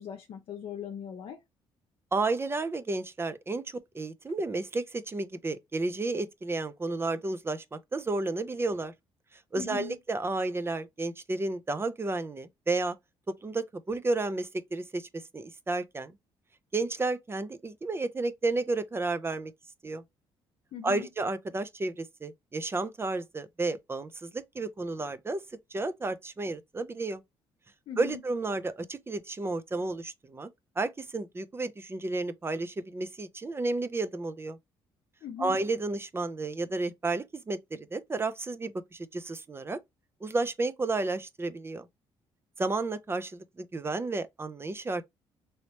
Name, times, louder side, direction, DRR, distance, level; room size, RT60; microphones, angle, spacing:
voice 1, 0.0-1.4 9.6-10.0 20.7-21.1 27.9-28.2 35.2-35.6, left 8 dB, 65° left, 0.7 m, -39 dB
voice 2, 2.1-8.9 9.5-13.0 13.3-15.1 15.3-16.1 16.7-19.5 19.8-20.0 20.8-25.4 25.7-27.2 28.0-30.5 30.8-34.6 35.4-39.8 40.2-41.9 42.6-45.0, right 2 dB, 25° right, 0.5 m, -32 dB
3.1 x 3.0 x 2.8 m
cardioid pair, 85°, 10 cm